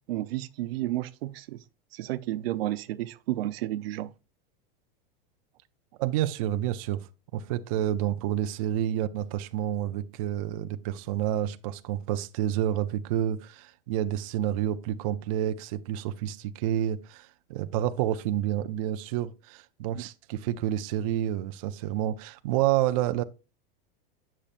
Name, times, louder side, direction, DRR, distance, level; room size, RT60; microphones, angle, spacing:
voice 1, 0.1-1.6 1.9-4.1 20.0-20.1, right 15 dB, 85° right, 0.6 m, -32 dB
voice 2, 6.0-7.1 7.3-23.2, right 11 dB, 40° right, 0.4 m, -29 dB
8.6 x 6.6 x 2.4 m
supercardioid pair, 175°, 29 cm